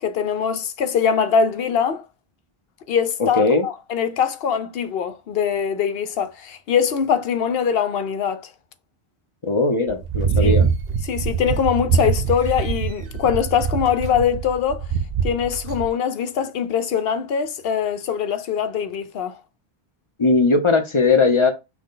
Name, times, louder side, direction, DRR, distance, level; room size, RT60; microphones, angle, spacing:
voice 1, 0.0-2.0 2.9-8.4 10.4-10.6 11.0-14.9 15.2-19.4, left 7 dB, 70° left, 0.9 m, -22 dB
voice 2, 3.2-3.7 9.4-10.7 20.2-21.5, left 3 dB, 35° left, 0.7 m, -18 dB
sound 1, 9.9-15.9, right 6 dB, 50° right, 0.6 m, -23 dB
6.0 x 2.2 x 3.8 m
omnidirectional pair, 1.0 m